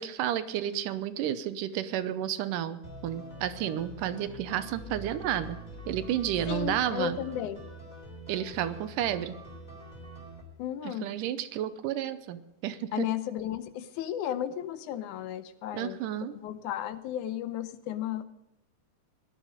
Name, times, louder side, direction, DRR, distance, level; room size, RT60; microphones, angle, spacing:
voice 1, 0.0-5.6 5.9-7.2 8.3-9.4 10.8-13.1 15.7-16.4, right 11 dB, 90° right, 12 dB, 2.5 m, -31 dB
sound 1, 2.8-10.4, equal, 15° left, 3.5 m, -45 dB
voice 2, 6.5-7.6 10.6-11.1 12.9-18.2, left 11 dB, 75° left, 13 dB, 2.1 m, -34 dB
18.0 x 12.0 x 5.1 m, 0.89 s
omnidirectional pair, 3.7 m